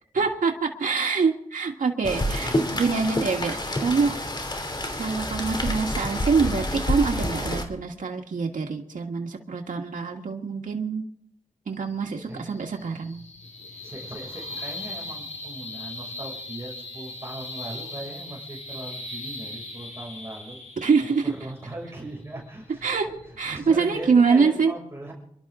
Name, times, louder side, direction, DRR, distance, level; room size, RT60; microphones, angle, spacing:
voice 1, 0.1-4.2 5.0-11.0 11.7-13.2 20.8-21.3 22.8-23.1 23.4-24.7, right 5 dB, 85° right, 1 dB, 1.7 m, -25 dB
Rain, 2.0-7.6, left 1 dB, 35° left, 3.1 m, -28 dB
sound 1, 11.7-24.3, left 2 dB, 60° left, 5.8 m, -40 dB
voice 2, 13.8-20.6 21.0-23.2 23.5-25.1, right 1 dB, 20° right, -3 dB, 6.0 m, -39 dB
28.0 x 12.0 x 3.8 m, 0.73 s
wide cardioid pair, 95°, 13 cm